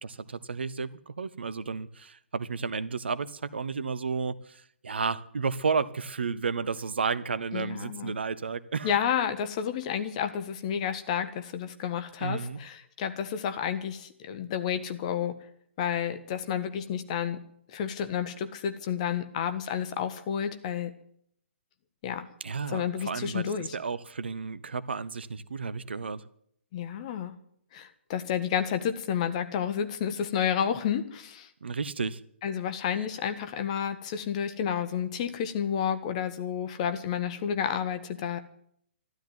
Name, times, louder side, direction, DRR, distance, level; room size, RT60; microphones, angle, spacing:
voice 1, 0.0-8.9 12.2-12.6 22.4-26.2 31.6-32.2, right 5 dB, 60° right, 16 dB, 1.0 m, -32 dB
voice 2, 7.5-8.1 8.8-15.4 15.8-17.4 17.7-20.9 22.0-22.3 22.7-23.7 26.7-27.3 27.7-31.5 32.4-38.4, left 8 dB, 35° left, 9 dB, 1.5 m, -30 dB
13.0 x 12.0 x 9.5 m, 0.69 s
figure-of-eight pair, 130°, 6 cm